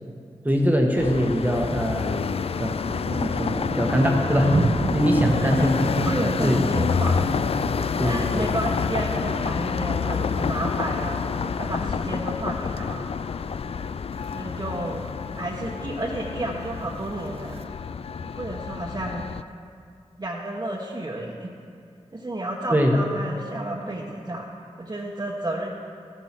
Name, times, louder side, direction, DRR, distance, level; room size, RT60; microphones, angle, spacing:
voice 1, 0.4-2.1 2.6-2.7 3.2-4.5 4.9-5.7 6.4-6.6 8.0-8.4 22.7-22.9, equal, 15° right, 1 dB, 1.4 m, -22 dB
sound 1, 1.0-19.4, left 6 dB, 55° left, 0.4 m, -28 dB
Thunder, 1.5-2.1 2.4-12.7 13.1-13.4 13.9-14.3 14.6-14.7 14.9-15.0 15.3-15.9 16.7-17.6, right 3 dB, 55° right, 0.9 m, -31 dB
voice 2, 5.2-5.7 6.0-7.3 8.0-11.2 11.6-13.1 14.3-15.0 15.4-17.5 18.3-19.2 20.2-21.5 22.1-24.4 24.8-25.7, right 1 dB, 30° right, -4 dB, 1.3 m, -31 dB
14.0 x 7.7 x 6.0 m, 2.5 s
cardioid pair, 55°, 12 cm